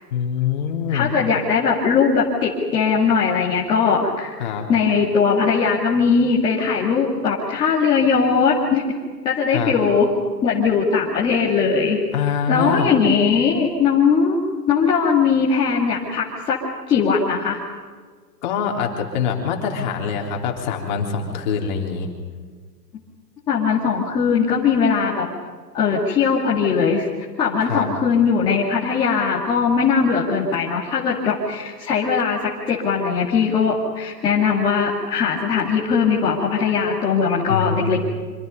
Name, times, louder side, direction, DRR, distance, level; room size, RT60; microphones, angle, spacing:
voice 1, 0.1-1.1 4.4-4.7 9.5-9.7 12.1-12.9 18.4-22.1 27.7-27.9 37.5-38.0, left 6 dB, 30° left, 1 dB, 3.5 m, -24 dB
voice 2, 0.9-4.3 4.7-8.8 9.2-10.1 10.4-12.0 12.5-14.4 14.7-16.6 16.9-17.6 23.5-25.3 25.7-27.1 27.4-38.0, left 5 dB, 10° left, -6 dB, 2.2 m, -19 dB
26.5 x 26.0 x 5.4 m, 1.6 s
hypercardioid pair, 170°, 49 cm